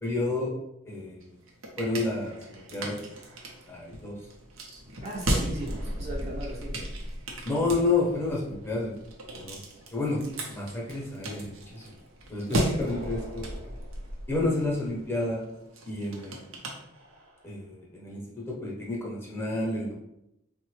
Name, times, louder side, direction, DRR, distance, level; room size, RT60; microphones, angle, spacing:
voice 1, 0.0-0.6 0.8-1.2 1.8-3.1 3.7-4.1 7.4-8.9 9.3-9.6 9.9-10.2 10.5-12.0 12.3-13.5 14.3-15.4 15.8-16.4 17.4-20.0, left 2 dB, 10° left, -4 dB, 0.7 m, -30 dB
sound 1, 1.2-17.5, right 1 dB, 85° right, 0.6 m, -36 dB
voice 2, 5.0-6.9 12.4-12.8, right 1 dB, 30° right, -3 dB, 0.5 m, -37 dB
3.9 x 2.1 x 3.1 m, 0.85 s
head